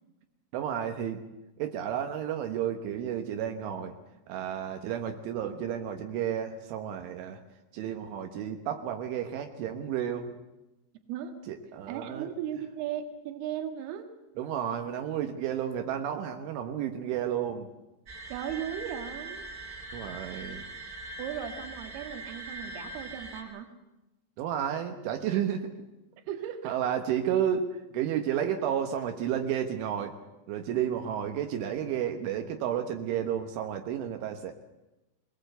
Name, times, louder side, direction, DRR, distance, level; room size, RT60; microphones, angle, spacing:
voice 1, 0.5-1.2 1.6-4.0 4.3-7.4 7.7-10.3 11.5-12.3 14.4-17.7 19.9-20.6 24.4-25.7 26.7-30.2 30.5-34.5, right 9 dB, 80° right, 5 dB, 3.7 m, -32 dB
voice 2, 11.9-14.1 18.3-19.5 21.2-23.7 26.3-27.0, right 9 dB, 65° right, 5 dB, 3.4 m, -37 dB
sound 1, 18.1-23.4, right 2 dB, 5° right, 4.4 m, -41 dB
23.5 x 18.5 x 8.0 m, 0.98 s
omnidirectional pair, 5.5 m